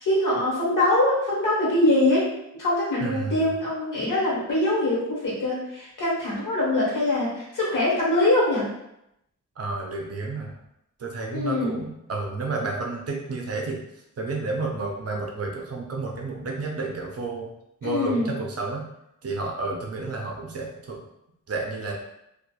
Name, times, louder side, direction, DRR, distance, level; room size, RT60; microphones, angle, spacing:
voice 1, 0.0-2.3 2.6-8.7 11.3-11.8 17.8-18.3, left 1 dB, 75° left, -6 dB, 1.1 m, -23 dB
voice 2, 3.0-3.5 9.6-10.5 11.0-13.8 14.2-17.5 17.8-18.9 19.2-21.0 21.5-21.9, right 3 dB, 50° right, 0 dB, 0.5 m, -31 dB
2.9 x 2.3 x 2.2 m, 0.82 s
wide cardioid pair, 170°, 32 cm